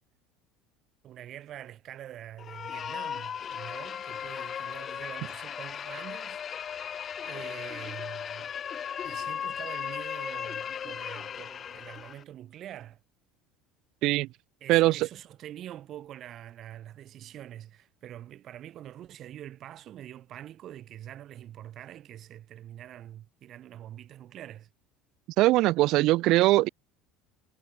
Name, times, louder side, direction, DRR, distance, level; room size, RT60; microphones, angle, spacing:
voice 1, 1.0-6.4 7.2-8.5 9.0-13.0 14.6-24.7, right 12 dB, 45° right, 6.2 m, -45 dB
sound 1, 2.4-12.2, left 8 dB, 35° left, 1.6 m, -37 dB
voice 2, 14.7-15.1 25.4-26.7, right 18 dB, 60° right, 0.8 m, -21 dB
supercardioid pair, 125°, 0 cm